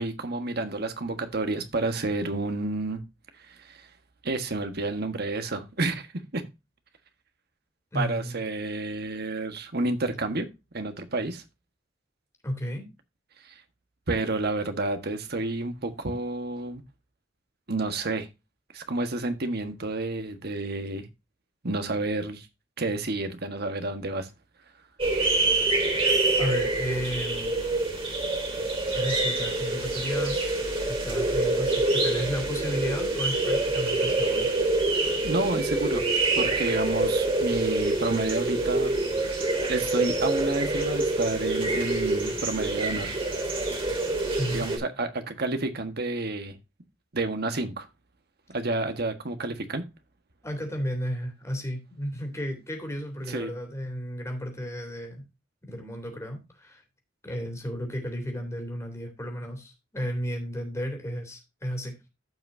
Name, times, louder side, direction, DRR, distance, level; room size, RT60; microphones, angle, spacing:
voice 1, 0.0-3.0 3.4-3.9 4.2-6.1 6.3-6.4 7.9-10.5 10.7-11.4 13.4-13.6 14.1-16.8 17.7-18.3 18.7-21.1 21.6-22.5 22.8-24.3 35.2-36.0 36.4-38.9 39.7-43.1 44.5-46.6 47.1-47.9 48.5-49.8 53.3-53.5, right 2 dB, 55° right, 1.5 m, -30 dB
voice 2, 7.9-8.4 12.4-12.9 26.4-27.5 28.9-30.5 30.9-34.5 44.3-44.6 50.4-55.2 55.6-56.8 57.2-61.9, equal, 15° left, 3.4 m, -33 dB
sound 1, 25.0-44.8, right 2 dB, 30° right, 3.3 m, -26 dB
14.5 x 5.9 x 2.7 m
head